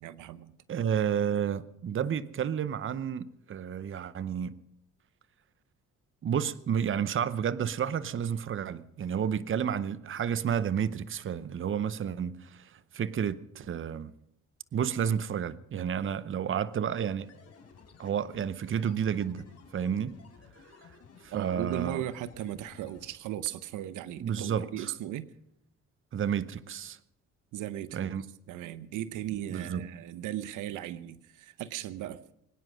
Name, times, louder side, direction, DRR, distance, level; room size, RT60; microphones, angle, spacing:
voice 1, 0.0-0.5 21.3-25.3 27.5-28.1 28.5-32.2, right 12 dB, 90° right, 0.8 m, -37 dB
voice 2, 0.7-4.5 6.2-14.1 14.7-17.3 18.0-19.5 19.7-20.1 21.2-22.0 24.2-24.9 26.1-27.0 27.9-28.2 29.5-29.8, right 8 dB, 45° right, 0.8 m, -31 dB
sound 1, 17.2-23.1, left 5 dB, 55° left, 3.6 m, -55 dB
22.5 x 9.8 x 6.2 m
cardioid pair, 90°, 30 cm